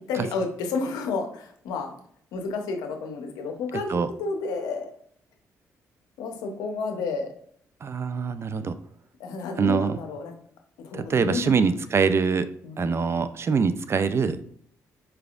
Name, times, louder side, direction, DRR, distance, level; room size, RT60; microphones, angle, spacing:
voice 1, 0.0-1.9 2.3-4.9 6.2-7.3 9.2-10.4 10.8-11.6 12.6-12.9, left 4 dB, 90° left, 4 dB, 0.7 m, -31 dB
voice 2, 7.8-8.8 9.6-10.0 10.9-12.5 12.8-14.4, right 5 dB, 40° right, 12 dB, 0.4 m, -24 dB
4.7 x 3.4 x 2.4 m, 0.63 s
supercardioid pair, 65°, 6 cm